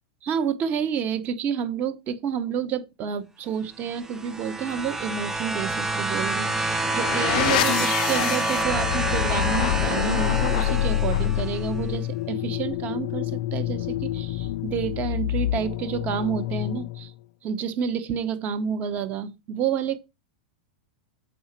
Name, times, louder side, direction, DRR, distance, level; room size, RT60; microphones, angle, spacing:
voice 1, 0.2-17.1 17.4-20.0, right 7 dB, 35° right, 1.1 m, -29 dB
sound 1, 3.9-11.7 12.7-12.8, right 2 dB, 10° right, 0.6 m, -28 dB
sound 2, 6.4-17.1, left 15 dB, 60° left, 0.4 m, -27 dB
8.0 x 4.9 x 5.9 m
supercardioid pair, 135°, 5 cm